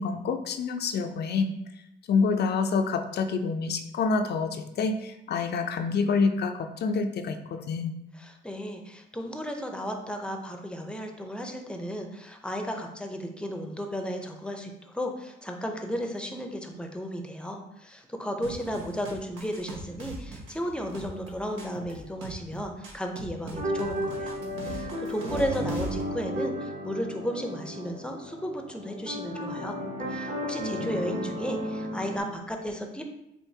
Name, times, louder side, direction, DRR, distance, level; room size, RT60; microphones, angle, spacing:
voice 1, 0.0-1.5 2.1-7.9, left 4 dB, 55° left, 7 dB, 0.5 m, -27 dB
voice 2, 8.1-24.4 24.7-29.8 30.1-33.0, equal, 5° left, 3 dB, 0.6 m, -34 dB
sound 1, 18.4-26.0, right 2 dB, 80° right, 1.0 m, -41 dB
sound 2, 23.5-32.2, equal, 40° right, 1.0 m, -34 dB
7.0 x 2.5 x 2.8 m, 0.85 s
cardioid pair, 90°, 20 cm